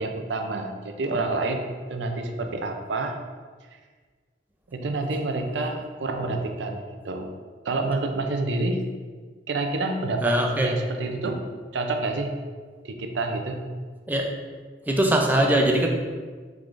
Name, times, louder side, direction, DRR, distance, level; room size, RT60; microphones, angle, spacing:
voice 1, 0.0-3.2 4.7-7.3 7.6-8.9 9.5-11.4 11.7-12.3 12.8-13.7, right 2 dB, 90° right, 5 dB, 0.5 m, -28 dB
voice 2, 10.2-10.7 14.1-14.3 14.9-15.9, right 1 dB, 10° right, 1 dB, 0.4 m, -21 dB
4.7 x 3.6 x 2.5 m, 1.5 s
head